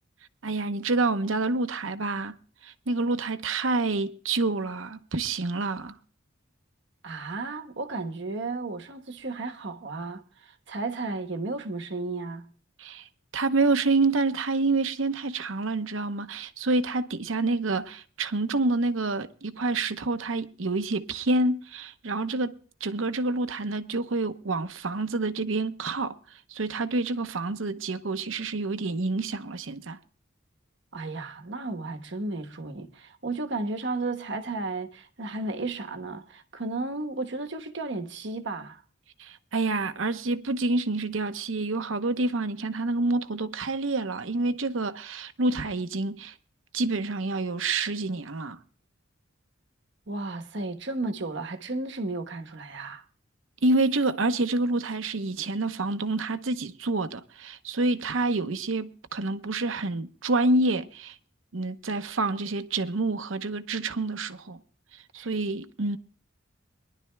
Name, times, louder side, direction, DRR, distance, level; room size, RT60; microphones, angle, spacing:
voice 1, 0.4-2.3 2.6-5.9 12.8-13.1 13.3-22.5 22.8-26.1 26.5-30.0 39.2-46.3 46.7-48.6 53.6-61.2 61.5-64.6 65.1-66.0, right 2 dB, 75° right, 0.9 m, -28 dB
voice 2, 7.0-12.5 30.9-38.8 50.1-53.0 65.1-65.3, right 3 dB, 60° right, 1.1 m, -33 dB
23.5 x 11.5 x 2.3 m
head